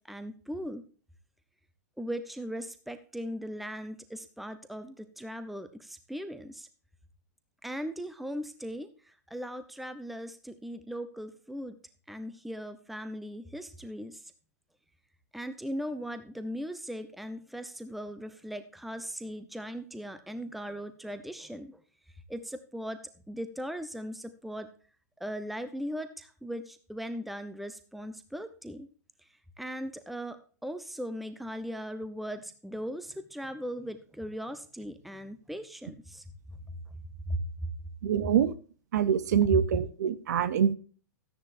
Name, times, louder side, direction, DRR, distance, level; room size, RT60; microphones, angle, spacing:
voice 1, 0.1-0.8 2.0-6.7 7.6-8.9 9.3-11.7 12.1-14.2 15.3-21.7 22.3-23.0 23.3-24.7 25.2-28.9 29.6-36.2 37.3-37.4, equal, ahead, 10 dB, 0.8 m, -38 dB
voice 2, 38.0-38.5 38.9-40.7, right 8 dB, 65° right, 15 dB, 0.9 m, -25 dB
13.5 x 10.0 x 2.6 m, 0.40 s
hypercardioid pair, 110°, 10 cm